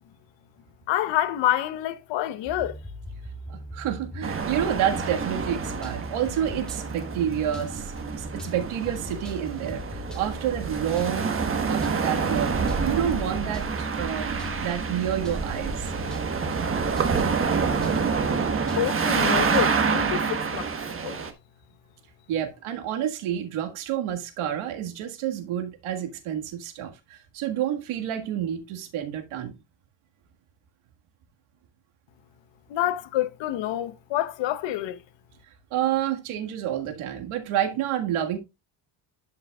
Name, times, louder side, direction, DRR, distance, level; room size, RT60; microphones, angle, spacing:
voice 1, 0.9-2.8 18.8-20.7 21.0-21.2 32.7-35.0, left 12 dB, 65° left, 0.9 m, -27 dB
sound 1, 2.5-20.2, equal, ahead, 1.7 m, -39 dB
voice 2, 3.5-7.9 8.2-11.3 11.7-12.6 12.8-14.3 14.6-16.2 22.3-29.5 35.7-38.4, right 10 dB, 85° right, 1.8 m, -29 dB
sound 2, 4.2-21.3, right 5 dB, 25° right, 1.2 m, -27 dB
12.0 x 5.6 x 2.3 m
cardioid pair, 125°, 48 cm